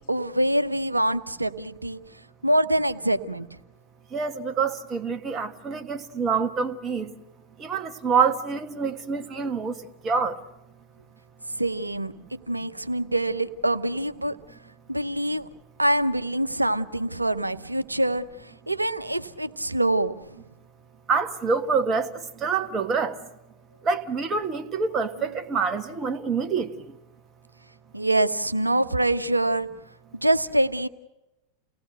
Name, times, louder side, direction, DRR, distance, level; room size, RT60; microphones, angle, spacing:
voice 1, 0.0-2.0 2.4-3.5 11.5-14.4 14.9-15.5 15.8-20.4 27.9-29.7 30.1-30.9, right 1 dB, 85° right, 0.9 m, -25 dB
voice 2, 4.1-7.1 7.6-10.4 21.1-23.2 23.8-27.0, right 5 dB, 25° right, 1.7 m, -26 dB
29.5 x 18.5 x 6.6 m
figure-of-eight pair, 90°, 0 cm